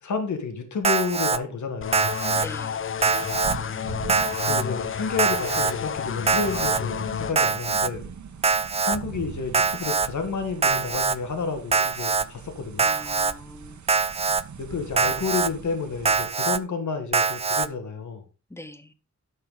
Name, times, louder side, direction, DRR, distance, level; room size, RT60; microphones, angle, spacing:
voice 1, 0.0-2.2 4.4-8.1 8.8-12.9 14.6-18.2, left 4 dB, 80° left, 2.1 m, -30 dB
Alarm, 0.8-1.4 1.9-2.5 3.0-3.6 4.1-4.6 5.2-5.7 6.3-6.8 7.4-7.9 8.4-9.0 9.5-10.1 10.6-11.2 11.7-12.3 12.8-13.3 13.9-14.4 15.0-15.5 16.1-16.6 17.1-17.7, right 5 dB, 20° right, 0.4 m, -23 dB
sound 1, 1.8-7.3, left 7 dB, 45° left, 0.5 m, -31 dB
voice 2, 2.3-2.9 12.8-13.8 18.5-18.9, left 1 dB, 10° left, 1.0 m, -42 dB
sound 2, 3.1-16.3, right 6 dB, 80° right, 1.3 m, -41 dB
11.5 x 6.7 x 4.0 m
wide cardioid pair, 115°, 29 cm